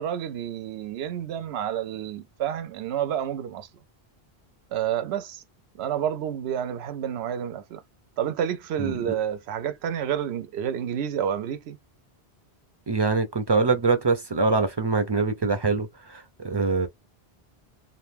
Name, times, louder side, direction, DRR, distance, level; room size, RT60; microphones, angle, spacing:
voice 1, 0.0-3.7 4.7-5.4 5.8-7.8 8.2-11.8, right 9 dB, 90° right, 0.8 m, -29 dB
voice 2, 8.8-9.1 12.9-16.9, right 4 dB, 35° right, 0.4 m, -24 dB
2.5 x 2.2 x 3.3 m
omnidirectional pair, 1.1 m